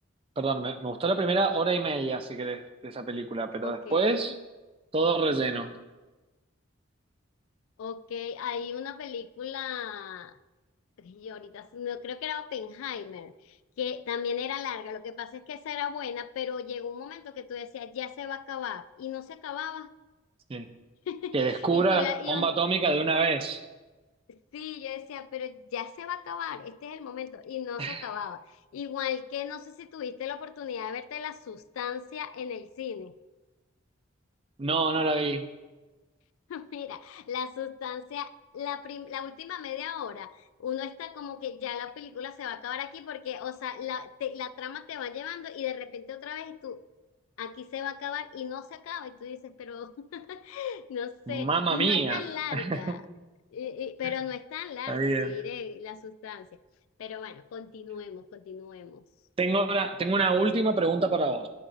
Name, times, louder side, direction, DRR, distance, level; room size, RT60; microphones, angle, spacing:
voice 1, 0.4-4.3 4.9-5.8 20.5-20.7 21.3-23.6 27.8-28.1 34.6-35.5 51.3-52.2 52.5-52.9 54.9-55.4 59.4-61.5, right 3 dB, 25° right, 9 dB, 0.4 m, -26 dB
voice 2, 3.6-4.3 7.8-10.4 11.0-19.9 21.1-22.5 24.3-28.5 28.7-33.1 36.5-46.8 47.4-53.0 53.5-56.5 57.0-59.0, left 8 dB, 85° left, 13 dB, 0.3 m, -36 dB
9.9 x 4.0 x 3.9 m, 1.2 s
head